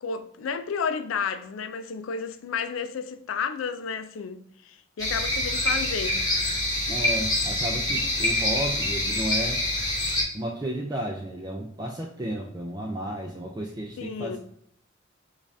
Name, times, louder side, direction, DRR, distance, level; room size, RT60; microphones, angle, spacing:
voice 1, 0.0-6.2 14.0-14.4, left 6 dB, 85° left, 0.4 m, -32 dB
sound 1, 5.0-10.2, left 1 dB, 20° left, 1.2 m, -26 dB
voice 2, 6.9-9.6 10.3-14.4, right 1 dB, 20° right, 0.4 m, -32 dB
5.2 x 2.4 x 2.6 m
head